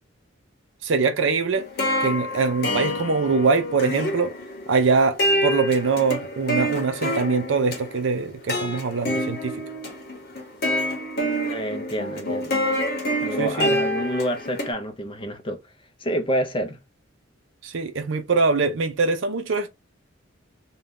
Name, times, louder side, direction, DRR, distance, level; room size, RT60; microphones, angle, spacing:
voice 1, 0.8-1.6 2.0-4.3 4.7-9.5 13.4-13.8 17.6-19.7, right 4 dB, 65° right, 0.5 m, -23 dB
sound 1, 1.5-14.7, equal, 50° left, 0.9 m, -27 dB
voice 2, 11.4-12.6 13.2-15.7 16.0-16.8, right 1 dB, 25° left, 0.5 m, -28 dB
2.7 x 2.2 x 3.5 m
head